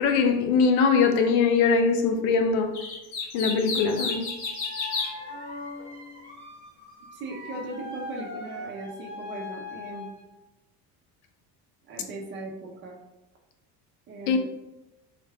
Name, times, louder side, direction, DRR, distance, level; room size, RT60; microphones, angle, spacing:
voice 1, 0.0-2.7 3.3-4.3 14.3-14.4, left 5 dB, 85° left, 0.6 m, -22 dB
sound 1, 2.7-5.1, left 4 dB, 70° left, 1.0 m, -31 dB
sound 2, 3.7-10.2, left 2 dB, 35° left, 1.3 m, -40 dB
voice 2, 7.0-10.1 11.9-13.0 14.1-14.4, right 2 dB, 30° right, 0.5 m, -38 dB
3.2 x 2.3 x 3.4 m
cardioid pair, 170°, 41 cm